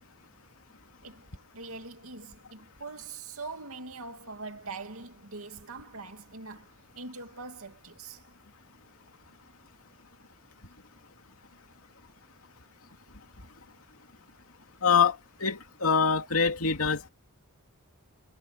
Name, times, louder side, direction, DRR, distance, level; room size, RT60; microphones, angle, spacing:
voice 1, 1.5-8.2, right 3 dB, 70° right, 2.6 m, -43 dB
voice 2, 14.8-17.1, left 6 dB, 70° left, 2.8 m, -25 dB
head